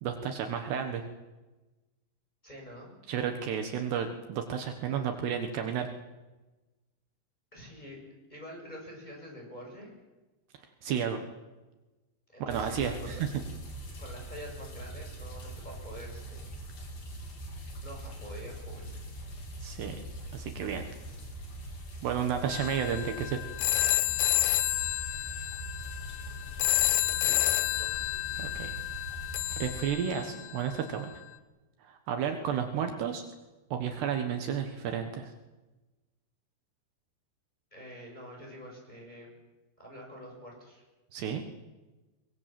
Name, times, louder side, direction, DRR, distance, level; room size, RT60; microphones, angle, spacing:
voice 1, 0.0-1.0 3.1-5.9 10.8-11.2 12.4-13.2 19.6-20.0 20.3-20.8 22.0-23.4 28.4-28.7 29.6-31.1 31.8-33.2 33.7-35.3 41.1-41.4, right 8 dB, 70° right, 5 dB, 3.4 m, -32 dB
voice 2, 2.4-2.9 7.5-8.0 8.3-9.9 12.3-13.2 14.0-16.5 17.8-18.9 26.5-28.0 32.2-32.5 37.7-39.3 39.8-40.8, equal, 10° left, 0 dB, 7.4 m, -46 dB
sound 1, 12.5-29.8, right 1 dB, 50° left, 4.8 m, -42 dB
sound 2, 22.5-30.6, left 15 dB, 80° left, 3.2 m, -30 dB
23.0 x 22.5 x 7.7 m, 1.1 s
omnidirectional pair, 5.2 m